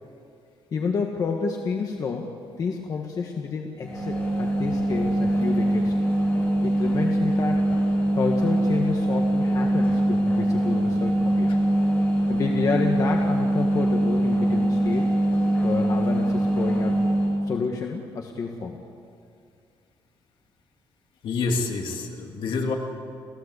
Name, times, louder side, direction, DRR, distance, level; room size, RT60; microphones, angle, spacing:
voice 1, 0.7-2.3 2.6-6.0 6.6-7.6 8.1-11.5 12.3-15.1 15.6-17.0 17.4-18.8, left 5 dB, 40° left, 2 dB, 1.6 m, -29 dB
sound 1, 3.8-17.4, right 1 dB, 20° left, 8.0 m, -23 dB
voice 2, 21.2-22.7, left 4 dB, 60° left, 2 dB, 3.0 m, -27 dB
29.5 x 16.0 x 8.2 m, 2.4 s
cardioid pair, 165°, 9 cm